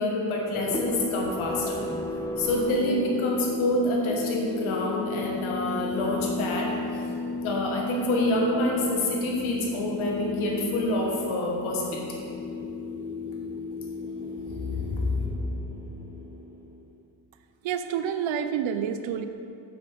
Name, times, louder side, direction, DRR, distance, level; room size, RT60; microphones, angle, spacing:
voice 1, 0.0-1.8 2.4-7.0 7.4-12.2 14.6-15.3, left 1 dB, 85° left, -1 dB, 1.6 m, -27 dB
sound 1, 0.5-16.8, left 3 dB, 5° left, 1.0 m, -34 dB
voice 2, 17.6-19.3, right 8 dB, 75° right, 9 dB, 0.6 m, -28 dB
7.0 x 6.4 x 5.3 m, 2.5 s
cardioid pair, 70°, 47 cm